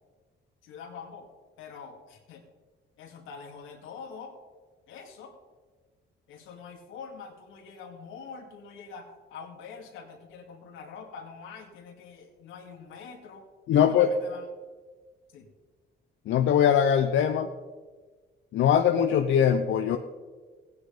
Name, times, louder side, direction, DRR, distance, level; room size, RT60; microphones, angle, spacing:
voice 1, 0.6-1.3 1.6-2.4 3.0-4.3 4.9-5.3 6.3-13.5 13.7-14.5 15.3-15.5, left 5 dB, 90° left, 3 dB, 2.3 m, -45 dB
voice 2, 13.7-14.1 16.3-17.5 18.5-20.0, left 9 dB, 75° left, 7 dB, 0.8 m, -22 dB
16.5 x 9.5 x 5.1 m, 1.4 s
cardioid pair, 90°, 20 cm